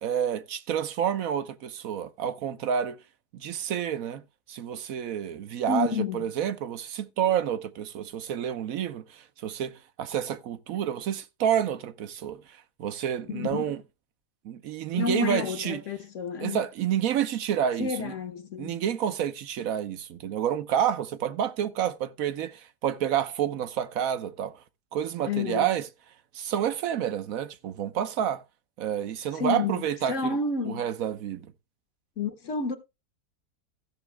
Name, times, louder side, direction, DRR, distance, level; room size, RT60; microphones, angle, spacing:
voice 1, 0.0-3.0 3.3-4.2 4.5-12.4 12.8-13.8 14.4-15.8 16.4-18.1 18.6-24.5 24.9-25.8 26.3-28.4 28.8-30.4 30.6-31.5, right 9 dB, 65° right, 1.2 m, -29 dB
voice 2, 5.7-6.2 13.3-13.8 14.9-16.6 17.8-18.8 25.3-25.7 29.3-29.8 30.1-30.9 32.2-32.8, left 5 dB, 55° left, 1.3 m, -30 dB
15.0 x 6.1 x 3.3 m
omnidirectional pair, 1.7 m